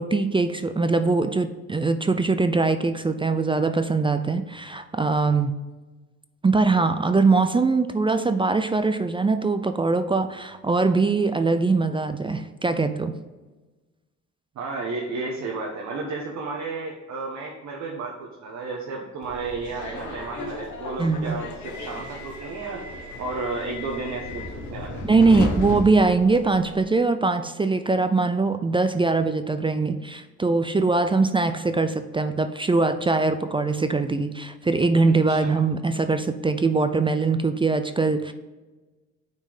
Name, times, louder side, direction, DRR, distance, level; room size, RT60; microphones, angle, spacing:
voice 1, 0.0-5.5 6.4-13.1 21.0-21.3 25.1-38.3, right 3 dB, 15° right, 9 dB, 0.4 m, -22 dB
voice 2, 14.5-22.8 23.2-25.0 35.3-35.6, right 3 dB, 65° right, -1 dB, 1.1 m, -32 dB
Subway metro underground, 19.2-26.8, left 2 dB, 70° left, 1.3 m, -34 dB
6.0 x 4.5 x 4.9 m, 1.2 s
cardioid pair, 90°, 30 cm